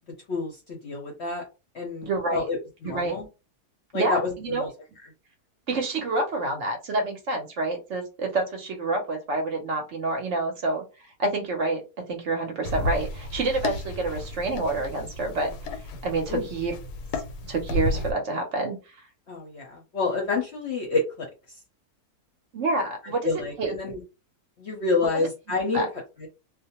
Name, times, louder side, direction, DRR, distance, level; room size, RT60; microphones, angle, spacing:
voice 1, 0.3-1.4 1.7-3.3 3.9-4.7 16.3-16.4 19.3-21.3 23.2-24.0 24.6-25.9 26.2-26.3, left 3 dB, 60° left, 0 dB, 0.8 m, -28 dB
voice 2, 2.0-2.5 2.8-3.1 3.9-4.6 5.7-10.8 11.2-15.5 16.0-16.7 17.4-19.0 22.5-23.3 23.6-23.8 25.1-25.3 25.7-25.9, right 2 dB, 60° right, 3 dB, 0.8 m, -28 dB
sound 1, 12.6-18.1, left 2 dB, 90° left, 1.1 m, -32 dB
2.4 x 2.1 x 2.8 m, 0.28 s
omnidirectional pair, 1.6 m